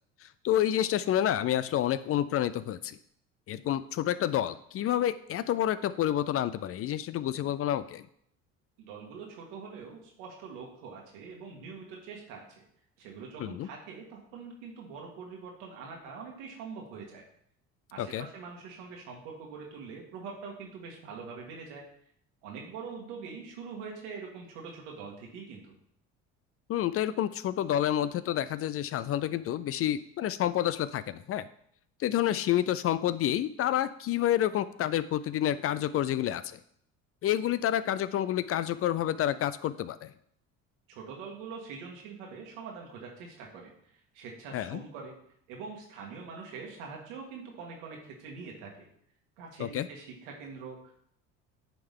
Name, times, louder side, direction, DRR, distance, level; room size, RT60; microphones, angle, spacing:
voice 1, 0.4-3.0 3.5-8.0 13.4-13.7 18.0-18.3 26.7-31.5 32.0-36.6 37.2-40.1 44.5-44.8 49.6-49.9, left 11 dB, 40° left, 15 dB, 0.4 m, -29 dB
voice 2, 8.8-12.6 13.0-17.2 17.9-21.8 22.4-25.7 40.9-43.7 44.1-45.1 45.5-48.9 49.4-50.9, right 5 dB, 80° right, 0 dB, 1.9 m, -44 dB
9.9 x 3.6 x 3.6 m, 0.68 s
supercardioid pair, 80°, 35 cm